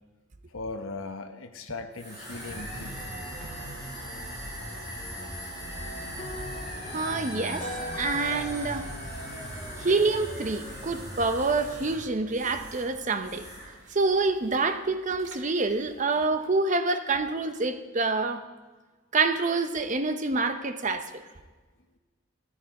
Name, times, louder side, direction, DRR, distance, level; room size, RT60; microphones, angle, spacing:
voice 1, 0.5-3.0, left 3 dB, 70° left, 7 dB, 1.0 m, -38 dB
sound 1, 1.9-12.9 13.2-13.7, equal, 20° right, 5.8 m, -39 dB
sound 2, 2.6-16.5, right 1 dB, 60° right, 2.1 m, -47 dB
sound 3, 6.2-10.5, left 2 dB, 30° left, 1.7 m, -42 dB
voice 2, 6.9-7.7 8.0-8.9 9.8-13.5 13.9-18.4 19.1-21.2, right 3 dB, 35° right, 8 dB, 0.7 m, -27 dB
14.0 x 13.0 x 4.7 m, 1.3 s
head